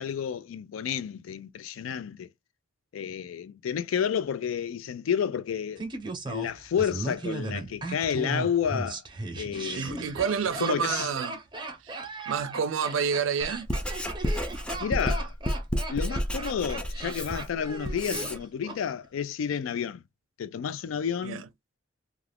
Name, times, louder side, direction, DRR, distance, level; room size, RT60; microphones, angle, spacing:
voice 1, 0.0-2.3 2.9-5.8 6.3-9.0 9.4-10.2 10.6-11.1 14.8-15.3 15.9-20.0 20.4-21.4, left 8 dB, 85° left, 0.3 m, -30 dB
Laughter, 5.8-18.8 19.0-19.1, right 2 dB, 25° right, 0.8 m, -37 dB
voice 2, 9.7-11.4 11.8-13.7 21.2-21.4, right 6 dB, 80° right, 0.4 m, -29 dB
Writing, 13.4-18.4, equal, 5° left, 0.4 m, -31 dB
2.4 x 2.3 x 3.3 m
head